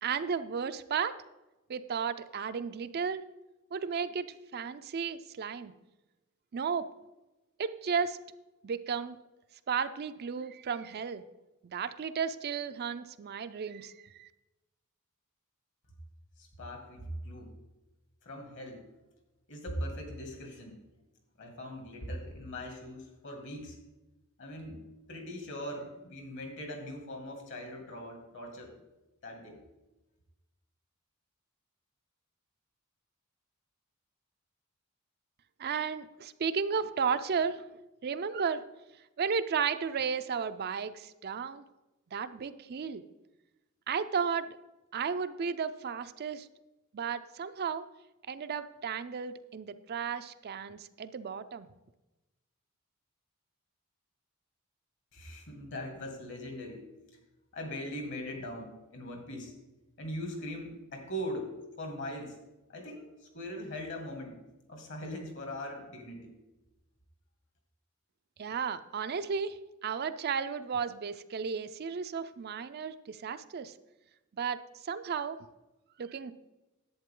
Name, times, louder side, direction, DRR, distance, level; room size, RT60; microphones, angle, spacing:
voice 1, 0.0-1.2 1.7-3.2 3.7-5.7 6.5-6.9 7.6-8.2 8.6-9.2 9.7-11.2 11.6-14.3 35.6-38.6 39.2-41.6 42.1-43.0 43.9-44.6 44.9-46.5 46.9-47.9 48.3-51.7 68.4-73.7 74.4-75.4 76.0-76.3, right 6 dB, 50° right, 11 dB, 0.4 m, -34 dB
voice 2, 16.4-17.5 18.2-18.8 19.5-20.8 21.4-23.8 24.4-24.8 25.1-28.7 29.2-29.6 55.1-56.8 57.5-59.6 60.0-62.4 62.7-63.1 63.3-64.4 64.7-66.3, equal, 60° left, 3 dB, 2.2 m, -40 dB
11.0 x 8.3 x 3.7 m, 1.0 s
head